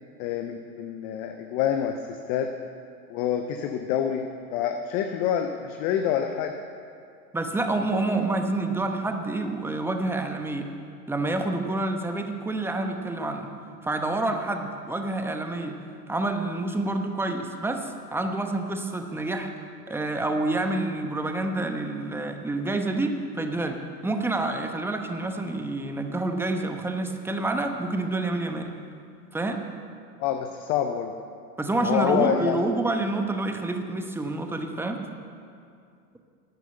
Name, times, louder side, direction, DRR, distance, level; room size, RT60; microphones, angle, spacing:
voice 1, 0.2-2.5 3.1-4.2 4.5-6.5 30.2-31.1 31.8-32.6, left 9 dB, 20° left, 5 dB, 0.3 m, -27 dB
voice 2, 7.3-10.7 11.1-13.5 13.8-15.8 16.1-19.5 19.9-28.7 29.3-29.6 31.6-35.0, right 2 dB, 5° right, 5 dB, 1.0 m, -28 dB
12.5 x 9.0 x 7.9 m, 2.4 s
hypercardioid pair, 100°, 49 cm